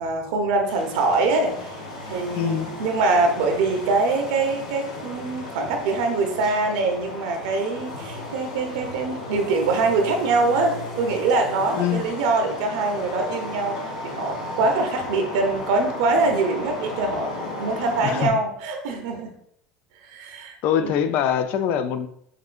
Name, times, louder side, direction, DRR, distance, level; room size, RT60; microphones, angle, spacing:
voice 1, 0.0-1.6 2.1-17.3 17.6-19.3 20.1-20.6 20.8-20.9, right 3 dB, 70° right, 3 dB, 0.8 m, -23 dB
sound 1, 0.7-18.3, left 2 dB, 85° left, 0.8 m, -35 dB
voice 2, 2.3-2.7 11.7-12.0 18.0-18.3 20.6-22.1, left 9 dB, 60° left, 11 dB, 0.4 m, -23 dB
5.9 x 2.6 x 2.5 m, 0.70 s
hypercardioid pair, 85°, 4 cm